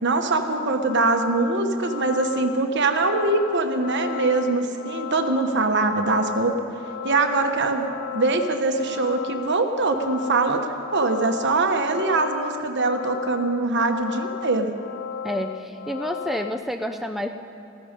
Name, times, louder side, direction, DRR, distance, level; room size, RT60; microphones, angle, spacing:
voice 1, 0.0-6.6 7.0-10.7 10.9-14.7, right 3 dB, 55° right, 6 dB, 1.1 m, -23 dB
sound 1, 0.6-16.6, left 9 dB, 50° left, 0.6 m, -35 dB
voice 2, 15.2-17.3, equal, ahead, 5 dB, 0.4 m, -29 dB
15.0 x 14.5 x 5.2 m, 2.9 s
head